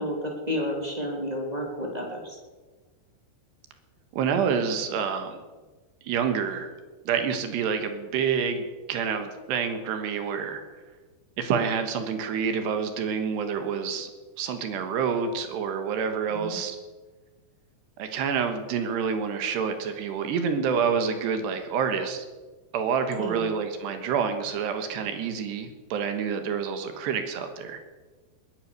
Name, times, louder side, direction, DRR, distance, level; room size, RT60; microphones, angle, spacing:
voice 1, 0.0-2.4 16.3-16.6 23.2-23.4, equal, 10° right, -1 dB, 2.9 m, -31 dB
voice 2, 4.1-5.4 6.0-6.7 7.1-10.6 11.4-14.1 14.4-16.8 18.0-22.3 22.7-27.8, right 6 dB, 75° right, 7 dB, 3.4 m, -28 dB
20.5 x 10.5 x 6.6 m, 1.3 s
omnidirectional pair, 5.2 m